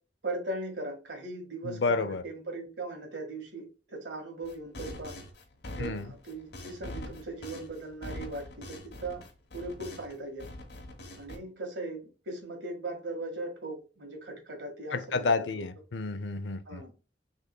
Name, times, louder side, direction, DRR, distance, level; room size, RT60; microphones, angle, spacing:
voice 1, 0.2-5.1 5.8-9.2 9.5-10.4 11.2-15.6 16.6-16.9, right 2 dB, 80° right, 1.7 m, -39 dB
voice 2, 1.6-2.2 5.8-6.1 14.9-16.8, left 4 dB, 80° left, 0.5 m, -30 dB
sound 1, 4.4-10.1 10.4-11.4, left 1 dB, 65° left, 1.0 m, -43 dB
6.4 x 3.6 x 2.2 m
head